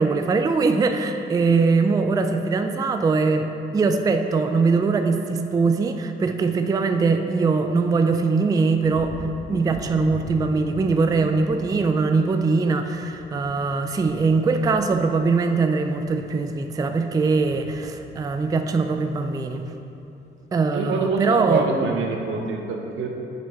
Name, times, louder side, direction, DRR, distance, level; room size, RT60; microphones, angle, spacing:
voice 1, 0.0-9.2 9.5-19.7 20.5-21.7, right 4 dB, 20° right, 7 dB, 0.3 m, -21 dB
sound 1, 8.7-20.0 20.4-20.9, left 2 dB, 35° left, 0.8 m, -42 dB
voice 2, 20.7-21.2 21.5-23.1, right 4 dB, 80° right, 1 dB, 0.8 m, -25 dB
6.0 x 5.3 x 4.0 m, 2.8 s
cardioid pair, 90°, 20 cm